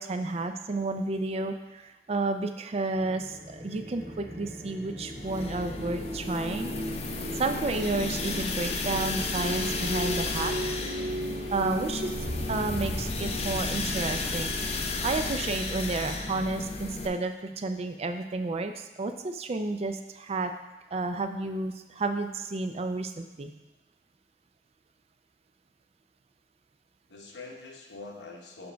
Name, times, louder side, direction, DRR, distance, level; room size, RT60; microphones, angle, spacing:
voice 1, 0.0-6.7 7.4-10.5 11.5-12.1 12.5-20.5 20.9-23.5, right 3 dB, 35° right, 7 dB, 0.4 m, -31 dB
sound 1, 2.9-16.4, equal, 65° right, 1.6 m, -37 dB
sound 2, 5.1-17.1, left 3 dB, 35° left, 0.5 m, -33 dB
voice 2, 10.0-11.2 27.1-28.7, left 3 dB, 80° left, 1 dB, 1.0 m, -46 dB
7.0 x 5.1 x 3.4 m, 1.1 s
head